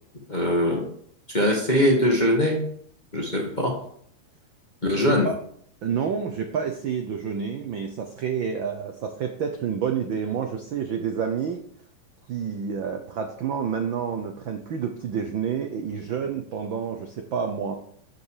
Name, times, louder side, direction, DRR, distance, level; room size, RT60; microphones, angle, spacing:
voice 1, 0.3-0.8 1.3-2.7 3.1-3.8 4.8-5.3, left 1 dB, 20° left, 0 dB, 1.4 m, -22 dB
voice 2, 5.8-11.6 12.3-17.7, right 7 dB, 65° right, 5 dB, 1.2 m, -29 dB
13.0 x 7.0 x 5.0 m, 0.63 s
omnidirectional pair, 3.3 m